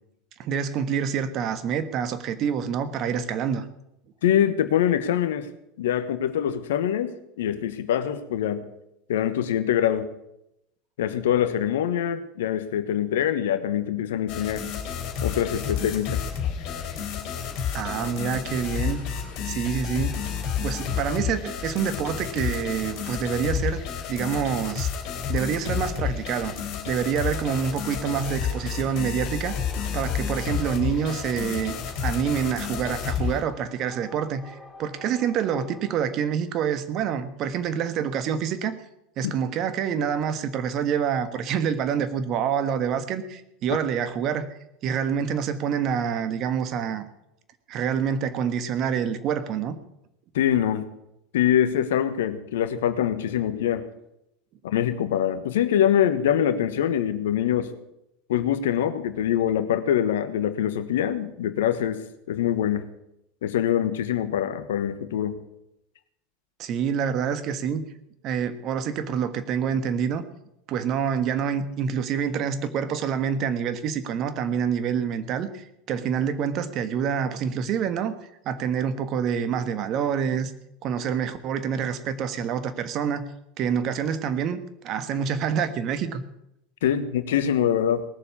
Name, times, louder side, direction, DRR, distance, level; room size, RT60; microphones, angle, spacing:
voice 1, 0.4-3.7 17.7-19.1 19.4-20.2 20.6-23.8 24.1-24.9 25.3-26.5 26.9-29.5 29.9-31.8 32.0-38.8 39.2-44.5 44.8-47.0 47.7-49.8 66.6-67.8 68.2-70.2 70.7-78.1 78.4-80.5 80.8-83.3 83.6-86.2, right 7 dB, 50° right, 12 dB, 1.5 m, -27 dB
voice 2, 4.2-5.5 5.8-8.6 9.1-10.1 11.0-14.7 15.2-16.2 39.2-39.3 50.3-50.9 51.3-53.8 54.6-57.7 58.3-62.8 63.4-65.3 86.8-88.0, left 10 dB, 80° left, 11 dB, 1.3 m, -24 dB
sound 1, 14.3-33.4, left 7 dB, 60° left, 3.5 m, -30 dB
sound 2, 27.3-36.1, left 2 dB, 5° left, 4.4 m, -48 dB
19.0 x 7.1 x 8.5 m, 0.84 s
hypercardioid pair, 90°, 0 cm